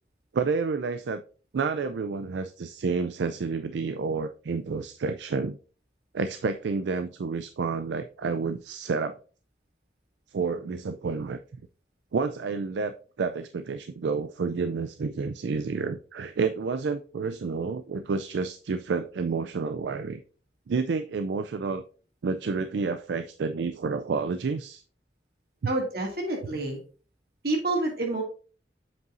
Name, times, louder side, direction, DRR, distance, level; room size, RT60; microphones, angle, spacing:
voice 1, 0.3-1.2 1.5-5.6 6.1-9.2 10.3-11.4 12.1-20.2 20.7-21.8 22.2-24.8, right 4 dB, 75° right, 0.4 m, -29 dB
voice 2, 25.7-26.8 27.4-28.2, right 2 dB, 55° right, 2.2 m, -28 dB
7.7 x 5.4 x 2.6 m
head